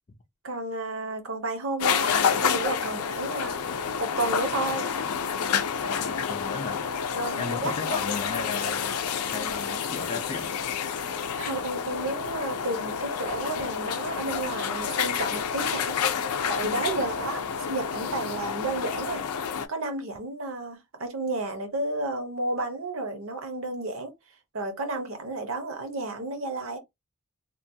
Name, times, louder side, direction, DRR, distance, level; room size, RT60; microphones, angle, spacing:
voice 1, 0.4-3.6 4.0-4.9 7.1-8.0 11.4-17.4 17.7-19.2 19.7-24.1 24.5-26.8, right 2 dB, 65° right, 0.8 m, -32 dB
sound 1, 1.8-19.7, left 7 dB, 85° left, 0.4 m, -29 dB
voice 2, 3.7-4.0 5.9-6.8 7.4-9.0 9.3-10.5 17.0-17.1, left 4 dB, 30° left, 0.4 m, -36 dB
3.0 x 2.2 x 2.6 m
head